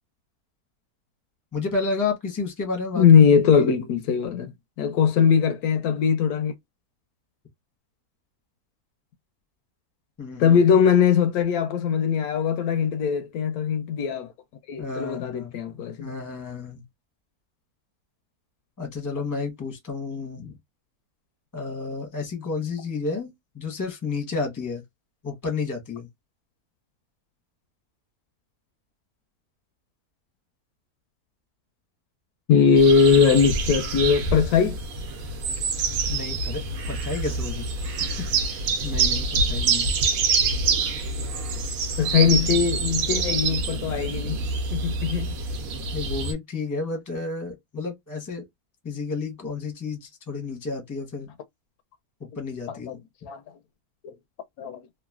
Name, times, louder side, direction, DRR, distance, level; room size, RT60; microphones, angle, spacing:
voice 1, 1.5-3.0 3.6-3.7 10.2-10.6 14.8-15.6 16.0-16.8 18.8-20.6 21.5-24.8 25.2-26.1 36.1-36.6 36.9-37.7 38.0-38.1 38.5-39.9 45.9-48.4 48.8-51.3 52.3-53.0, left 4 dB, 15° left, 0.8 m, -31 dB
voice 2, 3.0-4.5 4.8-6.5 10.4-14.3 14.7-16.1 32.5-34.8 42.0-44.4 44.7-45.4 52.9-53.0 53.2-53.4 54.0-54.1 54.6-54.8, left 6 dB, 80° left, 1.0 m, -20 dB
sound 1, 32.8-46.3, right 4 dB, 70° right, 1.1 m, -26 dB
3.0 x 2.4 x 2.3 m
omnidirectional pair, 1.6 m